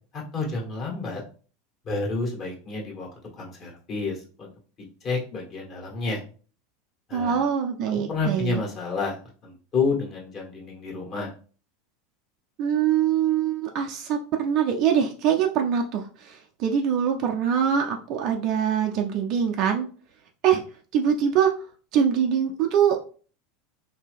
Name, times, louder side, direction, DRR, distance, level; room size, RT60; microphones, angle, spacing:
voice 1, 0.1-1.2 1.8-3.1 3.3-4.5 5.0-6.2 7.1-7.4 7.9-9.2 9.4-11.3, left 4 dB, 40° left, -2 dB, 1.5 m, -29 dB
voice 2, 7.1-8.6 12.6-19.9 20.4-20.6 20.9-21.5 21.9-23.0, right 8 dB, 50° right, 3 dB, 0.4 m, -23 dB
2.8 x 2.7 x 3.4 m, 0.39 s
figure-of-eight pair, 80°, 0 cm